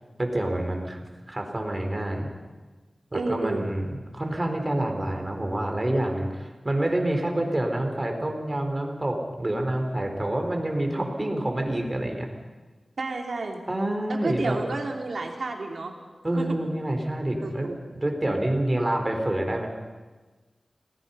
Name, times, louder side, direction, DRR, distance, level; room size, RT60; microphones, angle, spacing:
voice 1, 0.2-2.3 3.1-12.3 13.7-14.6 16.2-19.7, right 1 dB, 25° right, 3 dB, 3.9 m, -27 dB
voice 2, 3.1-3.6 13.0-13.6 14.1-15.9 16.4-16.5 17.4-17.8, right 3 dB, 80° right, 2 dB, 3.1 m, -30 dB
29.0 x 19.0 x 5.7 m, 1.3 s
wide cardioid pair, 80°, 0 cm